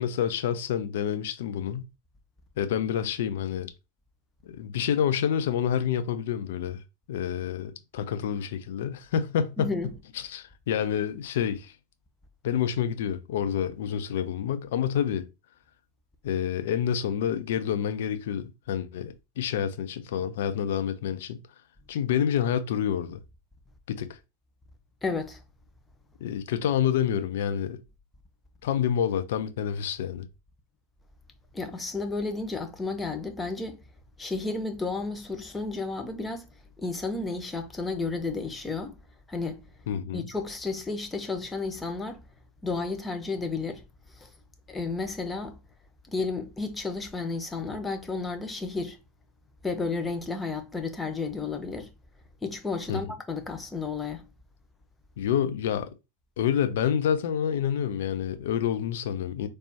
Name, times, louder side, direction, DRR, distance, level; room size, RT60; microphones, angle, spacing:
voice 1, 0.0-1.8 2.6-3.7 4.4-6.8 7.1-9.7 10.1-11.7 12.4-15.3 16.2-21.4 21.9-23.2 23.9-24.2 26.2-27.8 28.6-30.2 39.9-40.3 52.9-53.1 55.2-55.9 56.4-59.5, left 9 dB, 65° left, 0.4 m, -28 dB
voice 2, 9.6-9.9 25.0-25.4 31.5-33.8 34.2-36.5 36.8-39.0 39.3-39.6 40.1-42.2 42.6-43.8 44.2-44.3 44.7-45.6 46.1-49.0 49.6-51.9 52.4-54.2, left 3 dB, 15° left, 0.9 m, -32 dB
4.3 x 3.3 x 2.8 m
hypercardioid pair, 90°, 0 cm